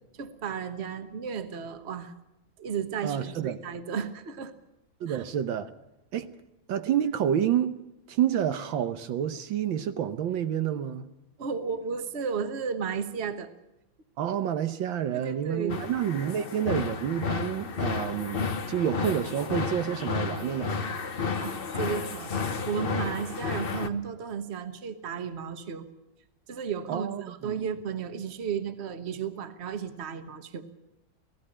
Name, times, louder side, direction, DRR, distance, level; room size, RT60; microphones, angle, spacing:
voice 1, 0.2-2.1 2.6-4.5 5.1-5.2 11.4-13.5 15.1-15.8 21.1-25.9 26.5-30.7, right 6 dB, 40° right, 1.3 m, -34 dB
voice 2, 3.0-3.6 5.0-5.7 6.1-6.3 6.7-7.7 8.1-11.1 14.2-20.8 26.9-27.5, right 9 dB, 75° right, 1.6 m, -29 dB
sound 1, 15.7-23.9, left 5 dB, 40° left, 0.9 m, -32 dB
18.0 x 15.5 x 9.9 m
omnidirectional pair, 2.1 m